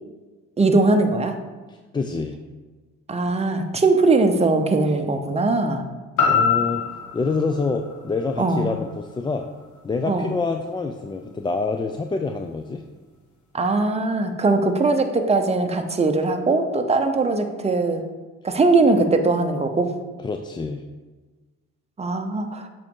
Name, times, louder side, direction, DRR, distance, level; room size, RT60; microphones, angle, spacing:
voice 1, 0.6-1.3 3.1-5.8 8.4-8.7 10.1-10.3 13.5-18.0 18.4-19.9 22.0-22.7, right 3 dB, 20° right, 5 dB, 0.7 m, -20 dB
voice 2, 1.7-2.4 6.3-6.9 7.1-9.5 9.8-12.8 20.2-20.8, left 4 dB, 15° left, 5 dB, 0.3 m, -26 dB
sound 1, 6.2-10.2 10.7-10.8, left 6 dB, 75° left, 1.4 m, -26 dB
7.4 x 3.9 x 3.7 m, 1.3 s
cardioid pair, 90°, 30 cm